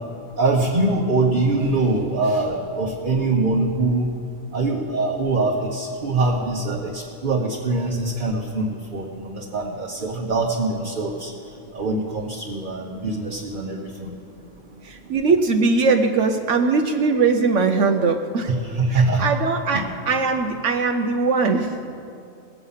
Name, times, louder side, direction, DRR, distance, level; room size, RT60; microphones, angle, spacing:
voice 1, 0.4-4.1 4.5-11.3 11.7-14.1 18.5-19.2 19.7-19.8, right 2 dB, 40° right, -2 dB, 1.2 m, -23 dB
voice 2, 14.8-18.5 18.9-21.8, right 4 dB, 70° right, 5 dB, 1.0 m, -20 dB
19.5 x 8.2 x 5.6 m, 2.5 s
omnidirectional pair, 1.4 m